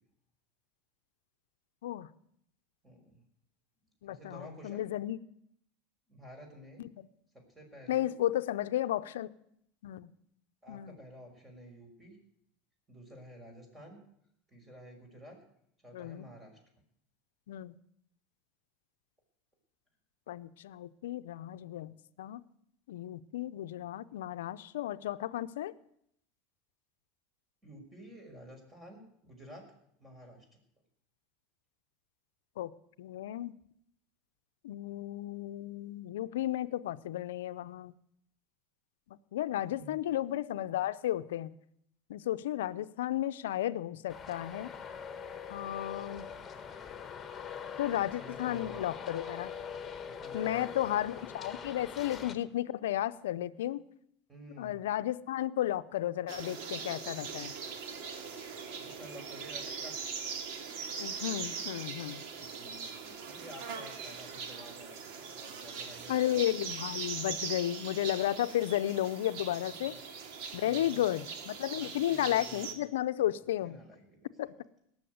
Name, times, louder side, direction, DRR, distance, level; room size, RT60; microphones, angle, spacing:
voice 1, 2.8-3.2 4.1-4.8 6.1-6.8 7.3-8.1 10.6-12.2 12.9-14.0 14.5-15.4 15.8-16.6 27.6-29.7 30.0-30.5 39.5-40.0 48.0-48.9 50.0-50.7 54.3-54.8 58.6-60.0 62.3-66.5 69.8-70.0 70.6-71.0 71.7-72.8 73.2-74.3, equal, 15° right, 3 dB, 5.7 m, -52 dB
voice 2, 4.0-5.2 6.8-7.1 7.9-9.3 9.8-10.1 10.7-11.0 15.9-16.3 17.5-17.7 20.3-22.4 22.9-25.7 32.6-32.7 33.0-33.5 34.6-37.9 39.1-41.5 42.1-44.7 45.5-46.3 47.8-49.5 50.3-53.8 54.6-57.5 61.0-62.2 66.1-69.9 70.5-73.8 74.4-74.5, left 13 dB, 85° left, 12 dB, 0.6 m, -33 dB
Traffic noise roadway noise, 44.1-52.3, left 7 dB, 25° left, 1.7 m, -43 dB
sound 1, 56.3-72.7, right 6 dB, 65° right, 2.4 m, -41 dB
18.0 x 7.1 x 9.4 m, 0.72 s
supercardioid pair, 105°, 0 cm